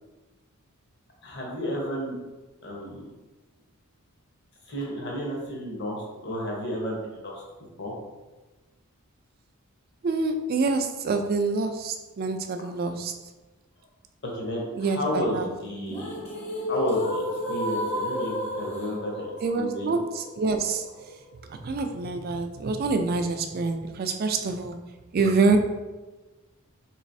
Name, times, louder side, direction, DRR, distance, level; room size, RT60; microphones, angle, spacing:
voice 1, 1.2-2.1 2.6-3.1 4.7-7.4 7.8-7.9 14.2-16.1 16.7-19.3 19.5-20.0, equal, 50° left, -2 dB, 0.9 m, -31 dB
voice 2, 10.0-13.1 14.8-15.5 19.4-20.9 21.5-24.8 25.1-25.6, right 4 dB, 40° right, 6 dB, 0.3 m, -26 dB
sound 1, 15.7-21.7, equal, 30° left, 0.7 m, -32 dB
3.9 x 3.1 x 2.6 m, 1.2 s
head